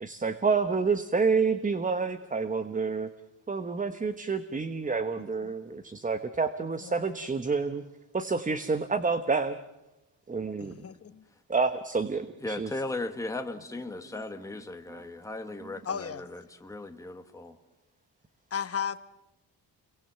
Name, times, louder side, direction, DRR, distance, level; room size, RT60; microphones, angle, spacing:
voice 1, 0.0-3.1 3.5-7.8 8.1-9.6 10.3-10.7 11.5-12.7 14.9-15.0 15.6-15.7, right 4 dB, 20° right, 10 dB, 1.0 m, -28 dB
voice 2, 5.2-5.5 6.8-7.0 10.6-11.2 13.8-14.1 15.8-16.2 18.5-19.0, left 7 dB, 35° left, 12 dB, 1.1 m, -36 dB
voice 3, 12.4-17.5, left 2 dB, 10° left, 5 dB, 1.5 m, -37 dB
29.0 x 22.5 x 7.9 m, 0.94 s
cardioid pair, 140°, 39 cm